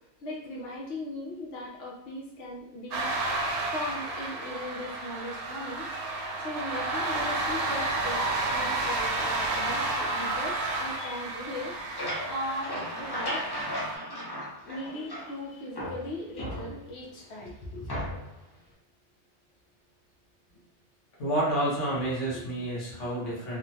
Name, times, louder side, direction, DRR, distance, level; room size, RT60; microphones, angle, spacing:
voice 1, 0.2-3.1 3.7-5.9 6.4-11.8 12.2-13.4 14.6-17.9, left 1 dB, 65° left, -3 dB, 0.9 m, -38 dB
sound 1, 2.9-14.0, right 2 dB, 75° right, 0.9 m, -31 dB
sound 2, 11.5-15.4 15.8-17.1 17.9-18.4, equal, 25° left, 0.6 m, -36 dB
voice 2, 21.2-23.6, right 1 dB, 80° left, -6 dB, 1.4 m, -29 dB
3.1 x 2.2 x 2.6 m, 0.85 s
omnidirectional pair, 1.2 m